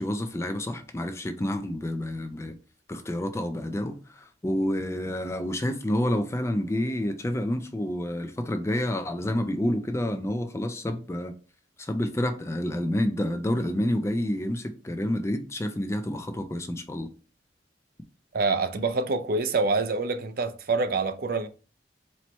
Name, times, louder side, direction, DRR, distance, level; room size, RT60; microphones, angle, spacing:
voice 1, 0.0-2.5 2.9-11.3 11.8-17.1, left 1 dB, 15° left, 0.4 m, -29 dB
voice 2, 18.3-21.5, right 3 dB, 55° right, 0.4 m, -26 dB
4.4 x 2.1 x 4.2 m
head